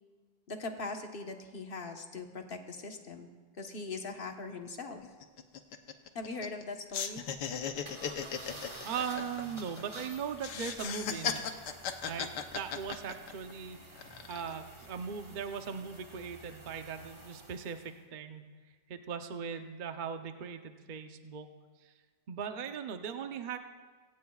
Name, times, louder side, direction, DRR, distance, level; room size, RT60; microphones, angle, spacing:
voice 1, 0.5-3.3 3.6-5.0 6.1-7.2, left 3 dB, 35° left, 3 dB, 1.2 m, -40 dB
sound 1, 4.1-4.2 4.5-4.7 5.0-6.6 6.9-10.0 10.4-13.5 14.0-14.5, left 7 dB, 70° left, 1.4 m, -37 dB
sound 2, 7.8-18.0, right 1 dB, 15° right, 1.5 m, -50 dB
voice 2, 8.8-11.4 12.0-18.4 18.9-21.5 22.3-23.6, right 6 dB, 85° right, 6 dB, 0.4 m, -39 dB
23.5 x 17.0 x 2.4 m, 1.5 s
omnidirectional pair, 2.0 m